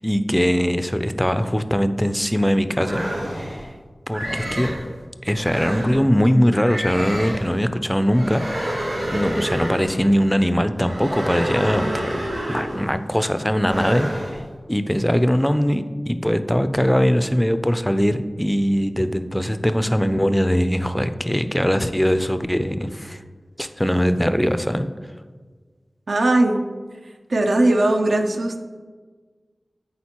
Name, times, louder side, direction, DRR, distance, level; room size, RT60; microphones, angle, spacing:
voice 1, 0.0-3.0 3.3-3.7 4.1-4.8 5.2-8.4 9.1-12.2 12.5-14.4 14.7-23.2 23.6-24.9, equal, 5° left, 10 dB, 0.3 m, -21 dB
sound 1, 2.8-3.6 4.1-4.8 5.4-6.0 6.6-7.5 8.1-10.0 10.8-12.9 13.6-14.4, right 1 dB, 90° right, 1.6 m, -28 dB
voice 2, 26.1-26.6 27.3-28.6, right 2 dB, 75° right, 5 dB, 0.5 m, -19 dB
8.7 x 3.9 x 2.9 m, 1.5 s
wide cardioid pair, 50°, 0 cm